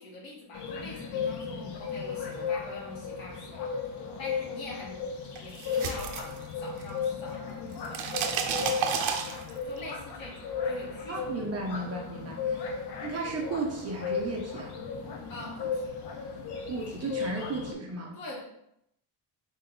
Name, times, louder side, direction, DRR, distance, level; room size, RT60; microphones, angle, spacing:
voice 1, 0.0-3.7 4.2-5.0 5.4-11.3 12.7-12.9 15.3-15.9 18.1-18.4, left 1 dB, 75° left, -3 dB, 1.4 m, -44 dB
sound 1, 0.5-17.7, left 6 dB, 55° left, 0.7 m, -35 dB
sound 2, 5.3-7.0 7.3-9.8, right 7 dB, 75° right, 0.6 m, -31 dB
voice 2, 11.1-12.6 13.0-14.7 16.7-18.2, right 3 dB, 35° right, 0 dB, 0.5 m, -34 dB
3.9 x 2.2 x 3.8 m, 0.77 s
cardioid pair, 170°, 47 cm